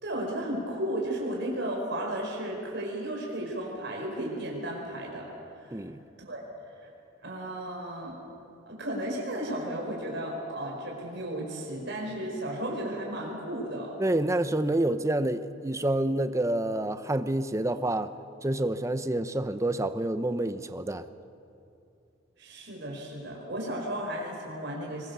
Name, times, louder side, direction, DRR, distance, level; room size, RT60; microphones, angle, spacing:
voice 1, 0.0-5.3 5.6-5.9 6.2-6.4 6.8-6.9 7.2-8.1 8.7-13.9 22.4-25.1, right 1 dB, 60° right, -2 dB, 5.0 m, -34 dB
voice 2, 14.0-18.1 18.4-21.0, right 1 dB, 15° right, 11 dB, 0.7 m, -28 dB
23.0 x 21.5 x 6.9 m, 2.7 s
head